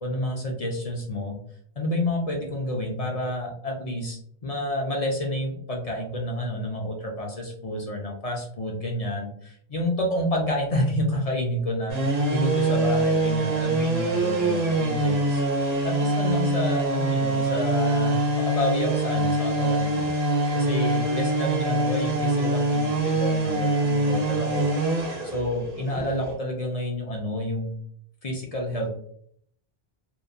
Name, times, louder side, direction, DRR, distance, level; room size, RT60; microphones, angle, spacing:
voice 1, 0.0-1.4 1.8-15.4 15.8-20.1 20.5-24.7 25.2-27.8 28.2-29.0, left 1 dB, 50° left, 1 dB, 0.5 m, -29 dB
sound 1, 11.9-26.3, right 2 dB, 70° right, 1.0 m, -24 dB
2.9 x 2.0 x 2.4 m, 0.64 s
omnidirectional pair, 1.0 m